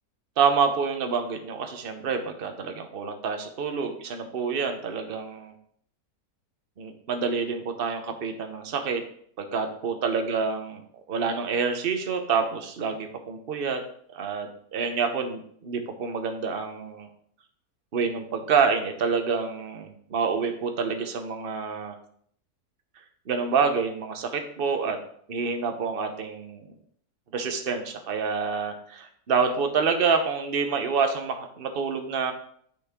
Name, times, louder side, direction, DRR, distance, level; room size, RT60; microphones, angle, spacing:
voice 1, 0.4-5.5 6.8-9.0 9.4-10.8 11.1-13.8 14.1-17.1 17.9-22.0 23.3-25.0 25.3-26.7 27.3-32.3, right 5 dB, 45° right, 6 dB, 1.0 m, -27 dB
8.8 x 6.2 x 3.6 m, 0.63 s
omnidirectional pair, 1.6 m